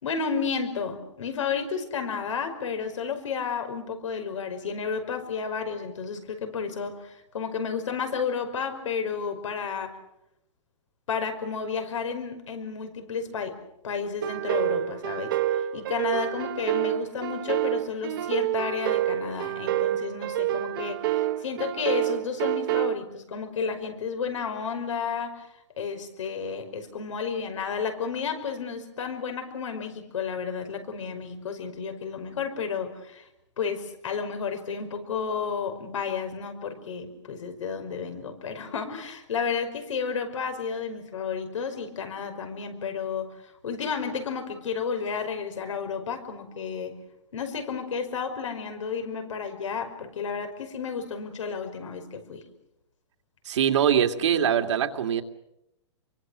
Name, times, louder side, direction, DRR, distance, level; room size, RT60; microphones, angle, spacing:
voice 1, 0.0-10.0 11.1-13.6 13.8-25.5 25.8-33.3 33.6-43.4 43.6-47.0 47.3-52.4, left 6 dB, 85° left, 7 dB, 5.4 m, -32 dB
sound 1, 14.2-22.9, right 13 dB, 45° right, 1.1 m, -28 dB
voice 2, 53.4-55.2, right 9 dB, 70° right, 5 dB, 2.4 m, -23 dB
26.5 x 24.0 x 6.4 m, 0.83 s
hypercardioid pair, 165°, 16 cm